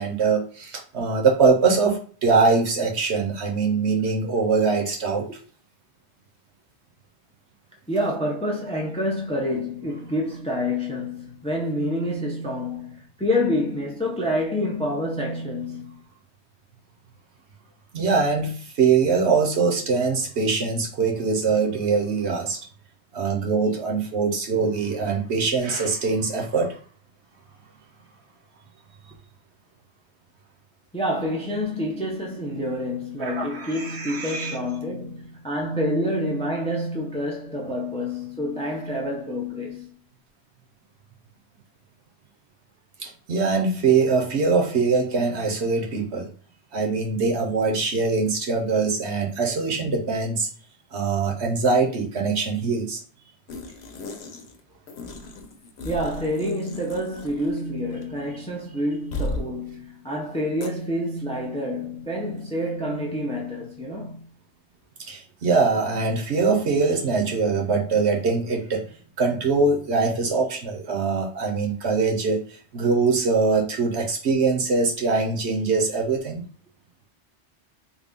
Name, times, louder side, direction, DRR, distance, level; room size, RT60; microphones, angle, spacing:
voice 1, 0.0-5.3 17.9-22.6 23.1-26.7 33.2-34.6 43.0-46.3 46.7-50.5 50.9-53.0 65.1-68.9 69.2-72.4 72.7-76.5, right 4 dB, 75° right, 1.2 m, -23 dB
voice 2, 7.9-16.0 30.9-40.0 55.8-64.2, left 1 dB, 10° left, 0.5 m, -27 dB
sound 1, 53.5-54.6 54.9-57.7 57.9-58.0 59.1-59.5 60.6-60.7, left 2 dB, 70° left, 1.0 m, -35 dB
3.6 x 2.3 x 3.7 m
omnidirectional pair, 1.2 m